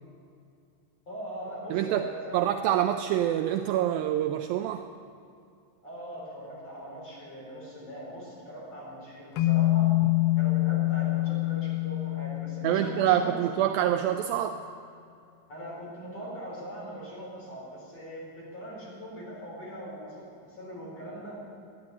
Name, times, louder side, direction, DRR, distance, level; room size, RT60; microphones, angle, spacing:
voice 1, 1.1-2.5 5.8-9.9 10.4-13.4 15.5-21.4, equal, 40° left, -5 dB, 5.3 m, -41 dB
voice 2, 1.7-2.1 2.3-4.9 12.6-14.6, right 11 dB, 80° right, 7 dB, 2.1 m, -26 dB
sound 1, 9.4-13.7, left 19 dB, 80° left, 2.0 m, -26 dB
13.5 x 10.5 x 8.7 m, 2.5 s
omnidirectional pair, 4.5 m